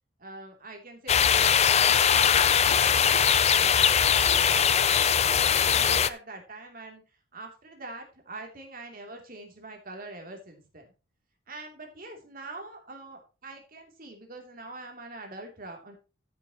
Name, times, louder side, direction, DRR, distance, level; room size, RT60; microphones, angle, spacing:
voice 1, 0.2-3.3 4.0-7.0 7.3-10.9 11.5-16.0, right 2 dB, 45° right, 2 dB, 3.0 m, -44 dB
sound 1, 1.1-6.1, left 8 dB, 35° left, 0.5 m, -21 dB
14.5 x 7.5 x 3.0 m, 0.32 s
head